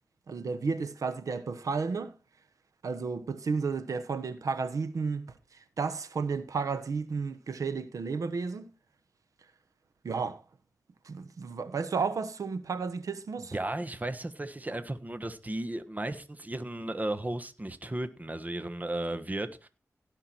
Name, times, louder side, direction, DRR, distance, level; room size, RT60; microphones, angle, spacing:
voice 1, 0.3-2.1 2.8-5.3 5.8-8.7 10.0-10.4 11.0-13.5, right 5 dB, 85° right, 1.1 m, -32 dB
voice 2, 13.4-19.7, right 1 dB, 30° right, 1.3 m, -35 dB
17.0 x 5.9 x 4.5 m
cardioid pair, 45°, 6 cm